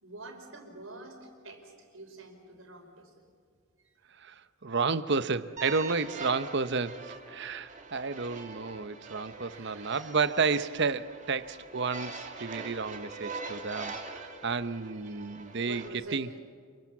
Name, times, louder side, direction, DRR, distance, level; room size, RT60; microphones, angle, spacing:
voice 1, 0.0-3.1 3.9-4.0 9.5-10.1 15.6-16.2, right 2 dB, 80° right, 5.1 m, -47 dB
voice 2, 4.2-16.3, right 4 dB, 60° right, 0.9 m, -31 dB
sound 1, 5.6-15.9, right 4 dB, 40° right, 2.5 m, -43 dB
29.0 x 23.0 x 7.3 m
head